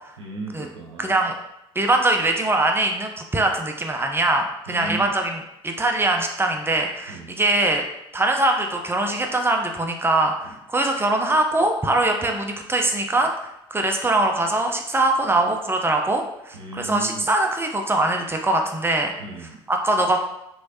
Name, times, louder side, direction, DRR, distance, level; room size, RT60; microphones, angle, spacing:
voice 1, 0.2-1.2 4.7-5.1 7.1-7.4 10.4-10.6 16.5-17.3 19.2-19.6, right 2 dB, 90° right, -2 dB, 0.5 m, -35 dB
voice 2, 1.0-1.4 1.8-7.8 8.1-19.1 19.7-20.2, right 2 dB, 15° right, 3 dB, 0.6 m, -22 dB
3.1 x 3.1 x 2.6 m, 0.83 s
hypercardioid pair, 55°, 14 cm